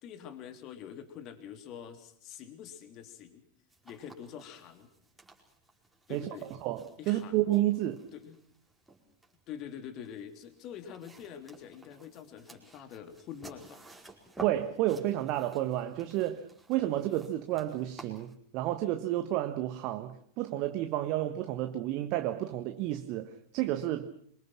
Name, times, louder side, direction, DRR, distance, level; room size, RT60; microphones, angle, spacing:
voice 1, 0.0-3.4 3.8-4.9 6.1-6.5 7.0-7.4 8.1-8.4 9.5-13.8, left 9 dB, 35° left, 3.3 m, -45 dB
sound 1, 3.7-18.3, right 2 dB, 5° right, 5.0 m, -53 dB
voice 2, 6.6-8.0 14.4-24.1, right 14 dB, 40° right, 1.4 m, -31 dB
27.0 x 24.5 x 6.1 m
figure-of-eight pair, 90°, 0 cm